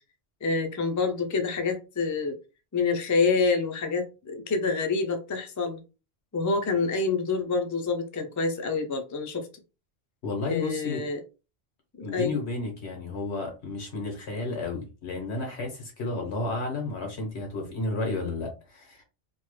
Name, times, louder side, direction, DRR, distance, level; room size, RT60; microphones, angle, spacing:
voice 1, 0.4-2.4 2.7-5.8 6.3-9.5 10.5-11.2 12.0-12.4, left 4 dB, 30° left, 0.3 m, -27 dB
voice 2, 10.2-11.0 12.0-19.0, left 3 dB, 90° left, 1.5 m, -32 dB
3.1 x 2.1 x 3.1 m
omnidirectional pair, 1.1 m